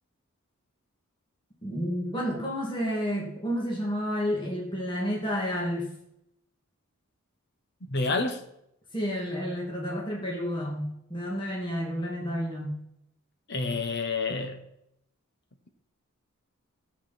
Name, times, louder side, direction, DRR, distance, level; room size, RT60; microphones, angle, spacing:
voice 1, 1.6-5.9 8.9-12.7, equal, 20° left, -3 dB, 2.4 m, -30 dB
voice 2, 7.9-8.4 13.5-14.6, left 3 dB, 50° left, 7 dB, 1.3 m, -28 dB
15.0 x 7.9 x 4.4 m, 0.78 s
head